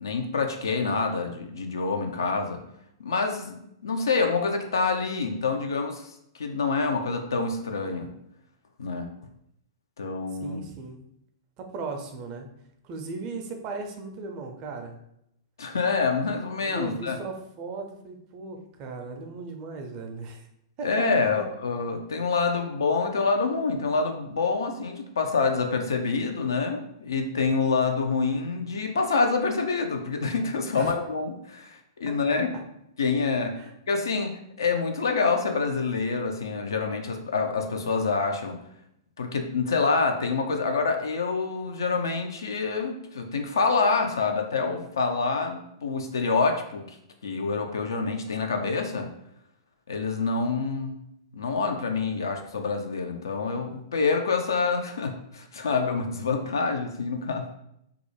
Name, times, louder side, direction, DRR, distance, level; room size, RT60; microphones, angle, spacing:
voice 1, 0.0-2.6 3.0-8.1 8.8-9.1 10.0-10.6 15.6-17.2 20.8-32.5 33.0-33.5 33.9-38.6 39.2-47.0 47.2-49.1 49.9-51.0 51.3-57.5, left 4 dB, 75° left, 4 dB, 0.4 m, -27 dB
voice 2, 10.4-11.0 11.6-12.5 12.8-15.0 16.6-20.5 20.8-21.1 21.3-21.4 30.7-30.9 32.1-32.2 32.5-32.6 33.6-33.7, right 3 dB, 40° right, 4 dB, 0.4 m, -37 dB
2.3 x 2.0 x 3.1 m, 0.77 s
figure-of-eight pair, 105°, 2 cm